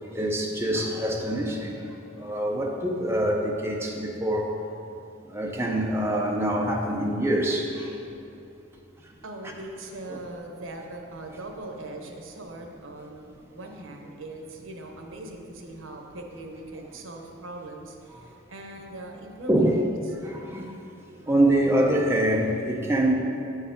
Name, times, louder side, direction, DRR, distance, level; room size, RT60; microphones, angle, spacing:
voice 1, 0.0-4.6 5.3-7.9 10.1-10.2 19.5-19.8 20.2-20.7 21.3-23.1, right 1 dB, 15° right, -1 dB, 0.5 m, -25 dB
voice 2, 9.2-19.9, right 2 dB, 85° right, 2 dB, 0.9 m, -40 dB
8.3 x 4.7 x 5.1 m, 2.6 s
head